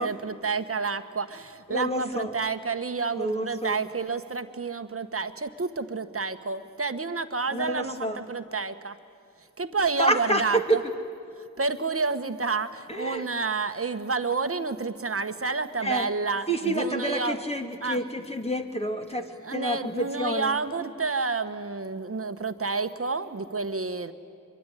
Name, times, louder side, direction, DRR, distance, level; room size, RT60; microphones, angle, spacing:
voice 1, 0.0-9.0 9.6-10.8 11.4-17.4 17.8-18.0 19.4-24.1, right 4 dB, 40° right, 10 dB, 1.3 m, -29 dB
voice 2, 1.7-2.4 3.1-3.8 7.5-8.2 10.0-10.8 12.9-13.3 15.8-16.1 16.5-20.5, right 1 dB, 20° left, 4 dB, 2.2 m, -28 dB
24.5 x 23.5 x 9.9 m, 2.4 s
wide cardioid pair, 65°, 33 cm